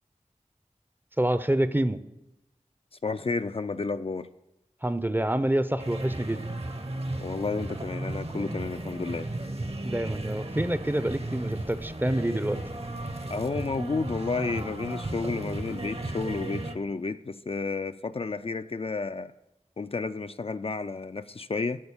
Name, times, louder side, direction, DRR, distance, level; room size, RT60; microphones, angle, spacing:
voice 1, 1.2-2.0 4.8-6.6 9.8-12.6, right 1 dB, 15° right, 0.5 m, -27 dB
voice 2, 3.0-4.3 7.2-9.3 13.3-19.3 19.8-21.8, left 4 dB, 50° left, 0.4 m, -31 dB
sound 1, 5.8-16.8, right 2 dB, 50° right, 0.9 m, -35 dB
11.0 x 4.4 x 7.1 m
wide cardioid pair, 45°, 13 cm